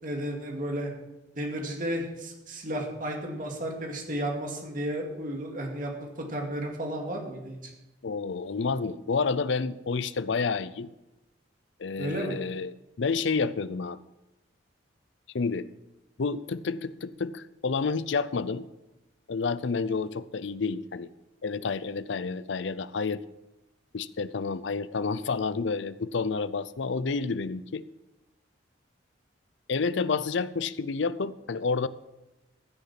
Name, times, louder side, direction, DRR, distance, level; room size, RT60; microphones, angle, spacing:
voice 1, 0.0-0.9 1.4-7.7 12.0-12.4, right 1 dB, 45° right, 1 dB, 2.2 m, -33 dB
voice 2, 8.0-10.9 11.8-14.0 15.3-15.7 16.2-18.7 19.3-21.1 21.4-23.2 23.9-27.8 29.7-31.9, left 4 dB, 70° left, 16 dB, 0.5 m, -29 dB
15.0 x 6.7 x 5.9 m, 1.0 s
head